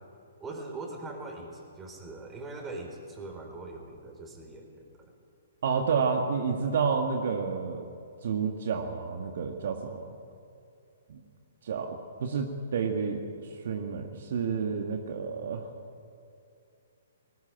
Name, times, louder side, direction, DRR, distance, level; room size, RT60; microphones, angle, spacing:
voice 1, 0.4-5.1, right 2 dB, 15° right, 3 dB, 4.1 m, -41 dB
voice 2, 5.6-7.9 8.2-10.0 11.1-11.2 11.6-13.2 13.6-15.7, right 5 dB, 60° right, 4 dB, 1.8 m, -30 dB
19.5 x 19.0 x 8.9 m, 2.5 s
figure-of-eight pair, 125°, 0 cm